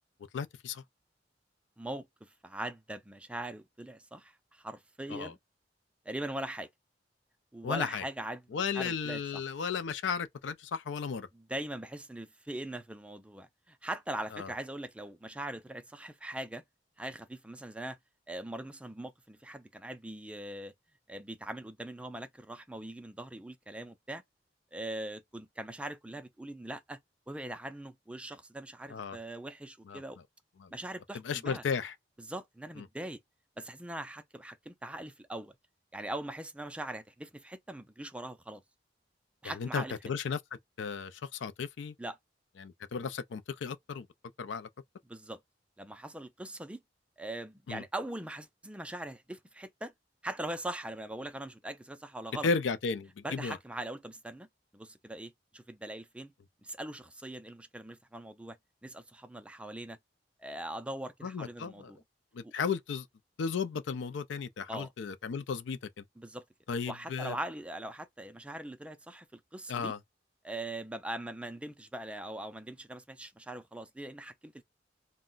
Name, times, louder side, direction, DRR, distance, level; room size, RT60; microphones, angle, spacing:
voice 1, 0.3-0.8 5.1-5.3 7.6-8.0 8.5-11.3 14.3-14.5 28.9-29.2 29.9-30.0 30.6-30.7 31.2-31.9 32.8-32.9 39.4-40.4 40.8-42.0 42.6-44.1 44.4-44.7 47.7-47.8 52.4-53.6 61.2-61.9 62.3-63.1 63.4-66.0 66.7-67.4 69.7-70.0, left 5 dB, 80° left, 0.4 m, -34 dB
voice 2, 1.8-5.4 6.1-6.7 7.5-8.4 8.7-9.2 11.3-16.6 17.0-18.0 18.3-20.7 21.1-24.2 24.7-27.0 27.3-30.2 30.7-31.6 32.2-33.2 33.6-35.6 35.9-38.6 39.4-39.9 42.0-42.2 45.1-45.4 45.8-46.8 47.2-49.9 50.2-52.5 53.2-54.5 54.7-56.3 56.6-58.6 58.8-60.0 60.4-62.0 62.4-62.5 64.7-64.9 66.2-66.4 66.9-69.9 70.4-74.6, right 1 dB, 5° right, 0.3 m, -41 dB
2.3 x 2.1 x 3.7 m
head